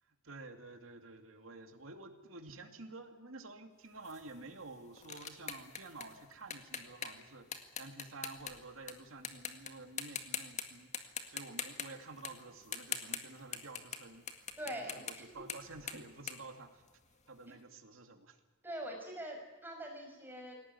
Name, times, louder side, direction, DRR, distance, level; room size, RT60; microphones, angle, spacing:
voice 1, 0.0-7.4 7.8-16.9 17.3-18.4, right 3 dB, 85° right, 5 dB, 2.5 m, -51 dB
sound 1, 4.0-8.9 9.2-9.7 10.0-10.6 10.9-17.3, left 7 dB, 35° left, 2.0 m, -43 dB
voice 2, 14.6-15.4 18.6-20.6, right 1 dB, 10° right, 2 dB, 5.7 m, -44 dB
21.0 x 18.5 x 9.7 m, 1.3 s
head